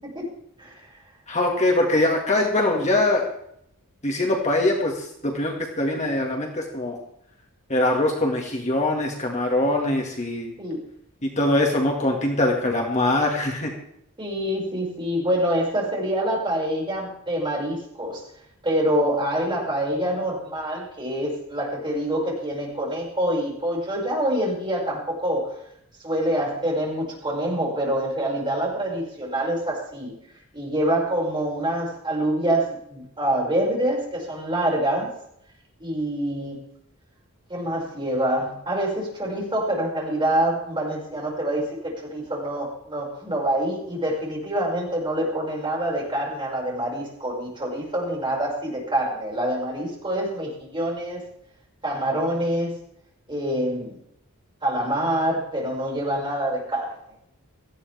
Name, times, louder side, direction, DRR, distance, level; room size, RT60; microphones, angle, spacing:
voice 1, 1.3-3.3 4.0-7.0 7.7-10.5 11.2-13.7, left 1 dB, 30° left, 1 dB, 2.2 m, -23 dB
voice 2, 14.2-18.2 18.6-25.6 26.0-30.1 30.5-35.1 35.8-36.6 37.5-51.2 51.8-52.8 53.3-54.0 54.6-57.0, right 1 dB, 20° right, -3 dB, 6.0 m, -26 dB
18.5 x 14.5 x 3.6 m, 0.72 s
head